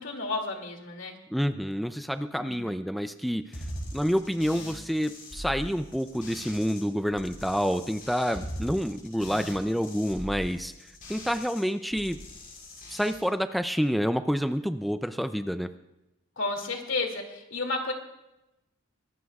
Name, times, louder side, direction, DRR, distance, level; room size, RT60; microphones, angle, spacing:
voice 1, 0.0-1.2 2.4-2.7 16.4-17.9, left 3 dB, 65° left, 3 dB, 2.5 m, -32 dB
voice 2, 1.3-3.6 3.9-10.7 11.1-12.2 12.9-15.7, equal, ahead, 9 dB, 0.4 m, -28 dB
sound 1, 3.5-6.8 7.1-11.6 11.9-13.1, equal, 45° left, 6.8 m, -41 dB
24.0 x 18.5 x 2.4 m, 0.92 s
head